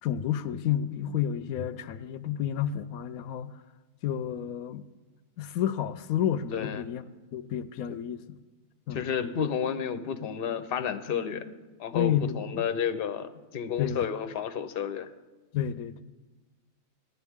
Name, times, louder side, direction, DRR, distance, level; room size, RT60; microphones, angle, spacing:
voice 1, 0.0-3.5 4.0-4.8 5.4-7.0 7.3-8.2 8.9-9.0 11.9-12.6 13.8-14.1 15.5-16.0, left 10 dB, 85° left, 1.0 m, -30 dB
voice 2, 6.5-6.9 8.9-11.4 11.8-15.1, left 7 dB, 50° left, 0.8 m, -31 dB
19.0 x 12.0 x 3.6 m
omnidirectional pair, 1.5 m